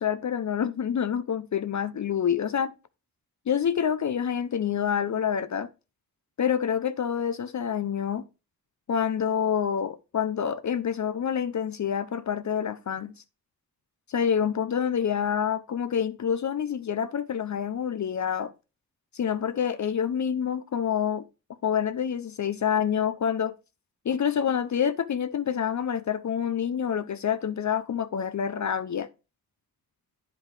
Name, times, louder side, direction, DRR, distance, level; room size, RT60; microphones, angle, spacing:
voice 1, 0.0-2.7 3.5-5.7 6.4-8.3 8.9-13.1 14.1-18.5 19.1-21.2 21.6-23.5 24.0-29.1, left 8 dB, 50° left, 0.5 m, -27 dB
9.3 x 5.0 x 3.2 m
cardioid pair, 70°, 37 cm